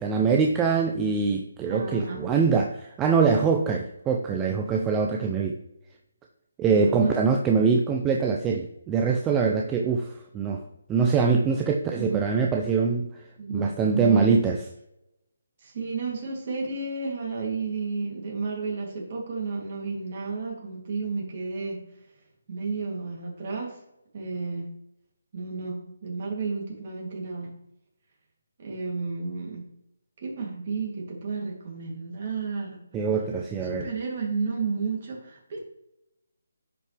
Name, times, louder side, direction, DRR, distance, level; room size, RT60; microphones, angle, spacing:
voice 1, 0.0-5.6 6.6-10.6 10.9-13.2 13.5-14.6 32.9-33.9, right 5 dB, 10° right, 2 dB, 0.5 m, -23 dB
voice 2, 1.7-2.5 6.7-7.2 12.0-12.2 13.4-14.4 15.6-21.8 22.5-23.8 24.1-24.7 25.3-27.5 28.6-29.6 30.2-32.8 33.6-35.6, right 4 dB, 40° right, -2 dB, 2.9 m, -32 dB
10.5 x 5.6 x 3.4 m, 0.86 s
hypercardioid pair, 165°, 0 cm